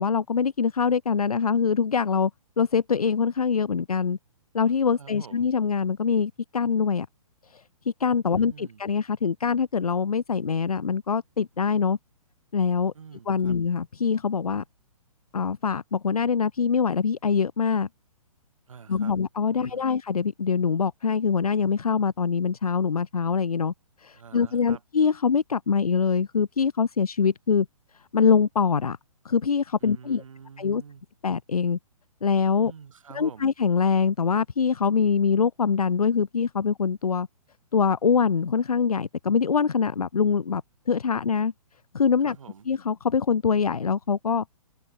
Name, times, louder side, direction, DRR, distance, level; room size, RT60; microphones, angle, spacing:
voice 1, 0.0-2.3 2.6-4.2 4.5-7.1 7.5-7.6 8.0-12.0 12.5-12.9 13.3-14.6 15.3-17.9 18.9-23.7 24.0-27.7 28.1-29.0 29.2-30.2 30.6-30.8 31.2-31.8 32.2-32.7 33.1-37.3 37.7-40.6 40.9-41.5 41.9-42.3 42.7-44.4, left 6 dB, 75° left, 0.6 m, -24 dB
voice 2, 4.9-5.4 8.3-8.8 12.9-13.6 18.7-19.2 19.5-19.9 24.1-24.8 29.8-31.0 32.6-33.5 42.2-42.7, right 6 dB, 60° right, 6.7 m, -47 dB
open air
figure-of-eight pair, 125°, 19 cm